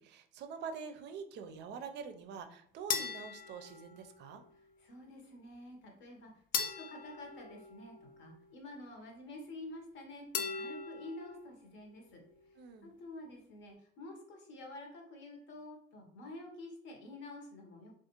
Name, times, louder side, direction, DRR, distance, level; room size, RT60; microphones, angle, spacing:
voice 1, 0.0-4.4 12.6-12.9, right 6 dB, 55° right, 7 dB, 0.4 m, -45 dB
sound 1, 2.9-4.4 6.5-8.4 10.3-11.5, left 6 dB, 45° left, 0.4 m, -39 dB
voice 2, 4.8-17.9, left 2 dB, 60° left, 2 dB, 0.9 m, -49 dB
2.4 x 2.3 x 2.9 m, 0.63 s
cardioid pair, 115°, 21 cm